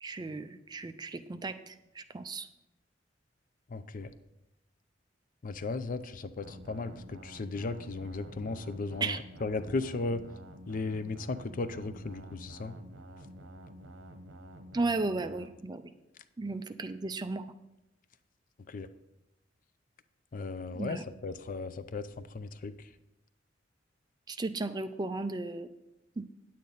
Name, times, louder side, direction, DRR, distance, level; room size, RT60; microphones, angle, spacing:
voice 1, 0.0-2.5 9.0-9.2 14.7-15.8 16.4-17.5 20.7-21.0 24.3-25.7 26.2-26.3, right 3 dB, 20° right, 10 dB, 0.4 m, -35 dB
voice 2, 3.7-4.1 5.4-10.3 10.7-12.8 18.7-18.9 20.3-22.7, left 3 dB, 45° left, 12 dB, 0.5 m, -36 dB
sound 1, 6.4-15.5, right 1 dB, 85° right, 0.9 m, -49 dB
9.3 x 8.5 x 4.0 m, 0.91 s
head